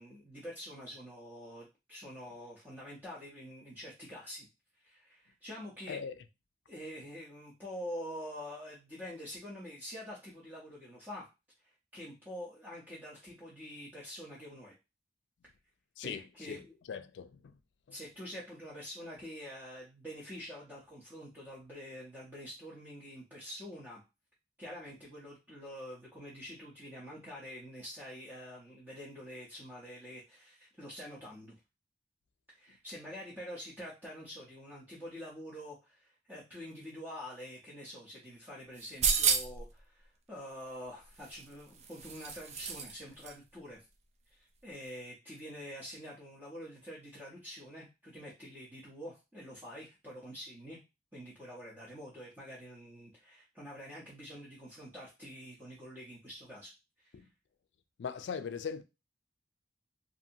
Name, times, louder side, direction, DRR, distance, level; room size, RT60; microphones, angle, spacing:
voice 1, 0.0-4.5 4.8-6.0 6.7-11.3 11.6-14.7 16.0-16.8 17.9-24.0 24.6-31.5 32.5-43.8 44.3-50.8 51.1-56.7 57.0-57.2, equal, 10° right, 0.7 m, -46 dB
voice 2, 5.9-6.2 16.0-17.6 17.9-18.0 57.1-57.3 58.0-58.8, left 6 dB, 85° left, 0.4 m, -40 dB
sound 1, 38.8-39.7 41.2-42.9 43.2-43.3, right 6 dB, 40° right, 0.4 m, -31 dB
2.7 x 2.6 x 2.7 m
head